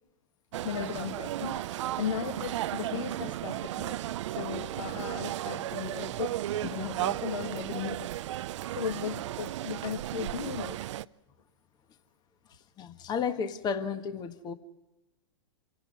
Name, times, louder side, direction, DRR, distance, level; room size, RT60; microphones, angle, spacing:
sound 1, 0.5-11.1, right 13 dB, 70° right, 0.6 m, -34 dB
voice 1, 0.6-1.6 2.0-4.0 4.3-6.4 6.7-8.1 8.7-10.8, left 7 dB, 85° left, 7 dB, 1.6 m, -36 dB
voice 2, 12.8-14.5, left 6 dB, 25° left, 9 dB, 1.5 m, -33 dB
27.5 x 18.0 x 5.4 m, 0.95 s
hypercardioid pair, 130°, 16 cm